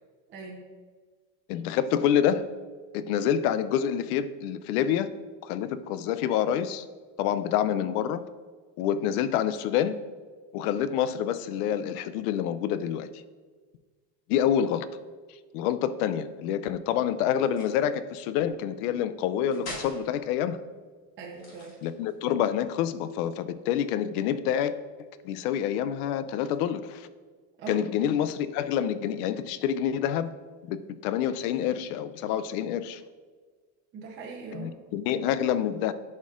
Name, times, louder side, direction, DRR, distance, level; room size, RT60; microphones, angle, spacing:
voice 1, 0.3-0.6 21.2-21.8 27.6-27.8 33.9-34.7, right 5 dB, 25° right, -2 dB, 0.7 m, -40 dB
voice 2, 1.5-2.5 2.9-5.1 5.4-6.9 7.2-8.2 8.8-10.0 10.5-13.2 14.3-14.9 15.5-20.6 21.8-24.7 25.2-27.1 27.7-30.3 30.6-33.0 34.5-35.9, left 9 dB, 75° left, 14 dB, 0.5 m, -27 dB
sound 1, 17.4-17.9 19.5-20.0 21.3-22.2, left 1 dB, 35° left, 1.7 m, -41 dB
11.0 x 4.3 x 2.4 m, 1.5 s
cardioid pair, 170°, 46 cm